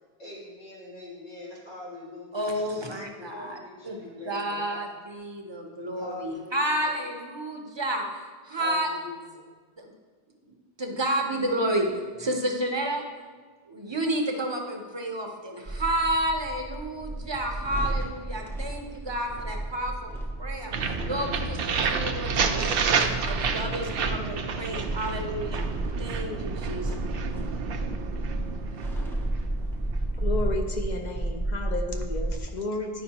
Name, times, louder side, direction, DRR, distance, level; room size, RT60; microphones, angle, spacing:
voice 1, 0.2-4.9 5.9-7.1 8.6-9.5, left 3 dB, 85° left, -8 dB, 2.5 m, -43 dB
voice 2, 2.3-3.6 3.8-8.1 8.4-8.9 9.8-9.9 10.5-11.9 12.2-13.0 13.7-20.1 20.4-20.7 21.0-25.7 26.0-26.9, right 1 dB, 30° right, 2 dB, 0.8 m, -30 dB
sound 1, 15.6-32.4, right 1 dB, 5° left, 0.5 m, -33 dB
sound 2, 20.7-30.5, right 5 dB, 70° right, 0.7 m, -30 dB
voice 3, 30.2-33.0, left 2 dB, 50° left, 3 dB, 0.7 m, -32 dB
10.0 x 5.1 x 2.9 m, 1.5 s
omnidirectional pair, 1.0 m